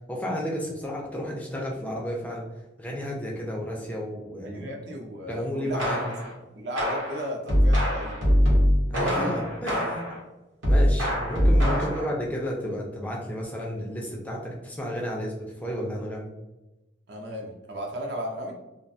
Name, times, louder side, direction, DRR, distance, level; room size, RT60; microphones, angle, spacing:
voice 1, 0.1-2.4 2.8-4.7 5.3-6.1 8.9-10.0 10.7-16.3, equal, 10° left, -2 dB, 0.3 m, -32 dB
voice 2, 4.4-5.9 6.5-8.2 11.6-12.0 17.1-18.5, equal, 60° right, 1 dB, 0.5 m, -35 dB
sound 1, 5.8-6.3 6.8-10.2 10.6-12.1, equal, 90° right, 0.9 m, -23 dB
2.3 x 2.2 x 2.5 m, 1.0 s
head